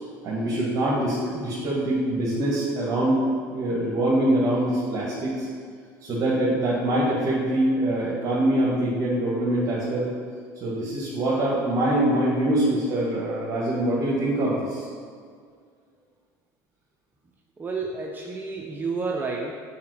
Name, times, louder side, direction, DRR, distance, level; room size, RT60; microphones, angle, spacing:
voice 1, 0.2-3.2 3.5-5.5 6.0-10.1 10.6-14.9, right 1 dB, 40° right, -6 dB, 1.7 m, -24 dB
voice 2, 17.6-19.6, right 4 dB, 20° right, 0 dB, 0.6 m, -30 dB
5.6 x 5.0 x 6.3 m, 2.1 s
supercardioid pair, 110°, 9 cm